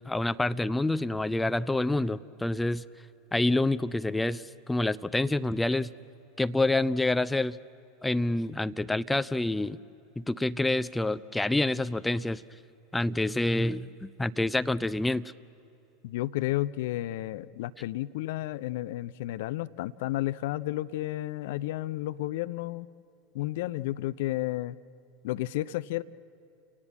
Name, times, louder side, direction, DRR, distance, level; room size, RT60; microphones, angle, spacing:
voice 1, 0.0-2.8 3.3-5.9 6.4-7.6 8.0-9.8 10.2-12.4 12.9-15.2, left 2 dB, 5° left, 13 dB, 0.5 m, -27 dB
voice 2, 16.0-22.9 23.3-24.8 25.2-26.0, left 16 dB, 55° left, 15 dB, 0.5 m, -32 dB
29.5 x 18.5 x 7.6 m, 2.8 s
figure-of-eight pair, 80°, 0 cm